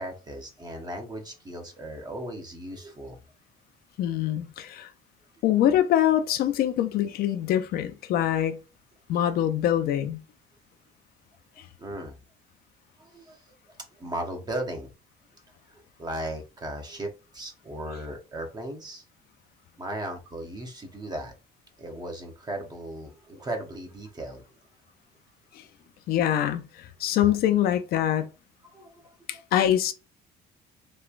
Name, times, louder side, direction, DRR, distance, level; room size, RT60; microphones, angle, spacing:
voice 1, 0.0-3.2 11.8-12.2 13.0-13.4 13.9-14.9 15.7-19.0 19.8-21.3 21.8-24.5 28.7-29.1, right 1 dB, 25° right, 0.8 m, -36 dB
voice 2, 4.0-4.9 5.4-8.6 9.1-10.2 11.6-11.7 25.5-25.6 26.1-28.3 29.3-29.9, left 11 dB, 65° left, 0.4 m, -24 dB
3.0 x 2.2 x 2.4 m
cardioid pair, 110°, 17 cm